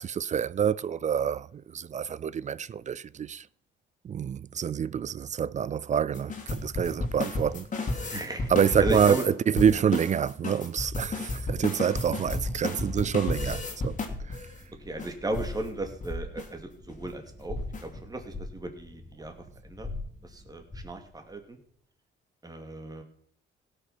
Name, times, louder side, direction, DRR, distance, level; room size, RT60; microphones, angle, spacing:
voice 1, 0.0-3.5 4.0-7.7 8.0-8.1 8.5-14.0 14.3-14.4, right 8 dB, 35° right, 0.4 m, -27 dB
sound 1, 6.1-9.3 9.6-14.5 15.0-15.1 15.3-15.5 15.8-16.1 16.4-16.5 16.9-17.1 17.6-18.0, left 2 dB, 40° left, 2.6 m, -33 dB
voice 2, 8.1-8.5 8.8-9.3 9.7-9.8 14.8-19.3 19.6-19.9 20.2-21.6 22.4-23.0, right 2 dB, 20° right, 2.5 m, -35 dB
sound 2, 12.1-21.0, left 2 dB, 15° left, 4.5 m, -41 dB
16.5 x 6.5 x 6.1 m
cardioid pair, 90°, 20 cm